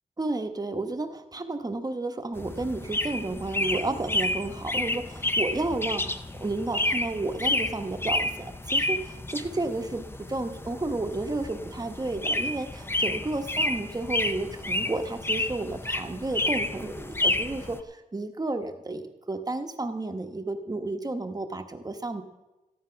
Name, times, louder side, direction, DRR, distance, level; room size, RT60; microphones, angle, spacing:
voice 1, 0.2-22.2, right 2 dB, 25° right, 6 dB, 1.1 m, -32 dB
sound 1, 2.4-17.8, left 1 dB, 15° left, 0.6 m, -30 dB
14.5 x 10.0 x 5.7 m, 1.1 s
wide cardioid pair, 130°, 15 cm